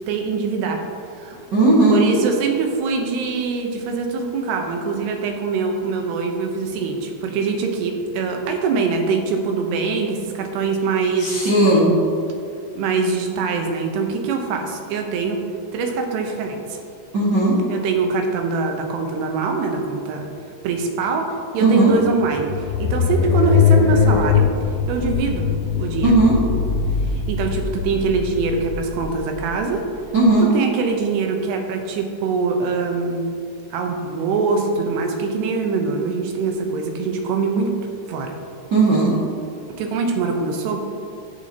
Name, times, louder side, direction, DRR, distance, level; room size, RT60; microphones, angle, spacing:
voice 1, 0.1-0.8 1.1-1.4 1.9-11.5 12.8-15.4 15.7-16.8 17.7-20.3 20.6-21.3 21.5-24.5 24.9-25.5 25.8-26.1 27.3-29.8 30.4-33.3 33.7-37.7 38.1-38.3 39.8-40.8, right 4 dB, 90° right, 3 dB, 3.2 m, -23 dB
voice 2, 1.5-2.0 11.2-11.9 17.1-17.5 21.6-21.9 26.0-26.3 30.1-30.5 38.7-39.1, right 2 dB, 55° right, -8 dB, 1.2 m, -15 dB
sound 1, 21.9-30.3, left 6 dB, 85° left, 2.4 m, -21 dB
13.0 x 8.3 x 2.9 m, 2.4 s
omnidirectional pair, 4.7 m